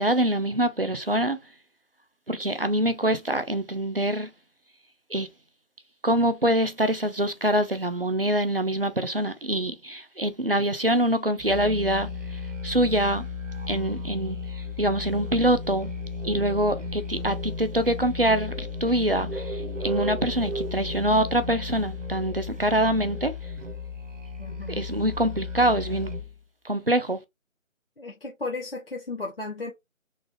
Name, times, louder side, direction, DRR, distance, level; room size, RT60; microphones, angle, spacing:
voice 1, 0.0-1.4 2.3-4.3 5.1-5.3 6.0-13.3 13.7-15.9 16.2-23.3 24.7-26.1 26.6-27.2, right 1 dB, 45° right, 0.5 m, -25 dB
Musical instrument, 11.4-26.4, left 3 dB, 60° right, 1.1 m, -34 dB
voice 2, 24.4-24.8 28.0-29.7, left 3 dB, 45° left, 0.7 m, -35 dB
3.9 x 2.4 x 3.2 m
figure-of-eight pair, 170°, 41 cm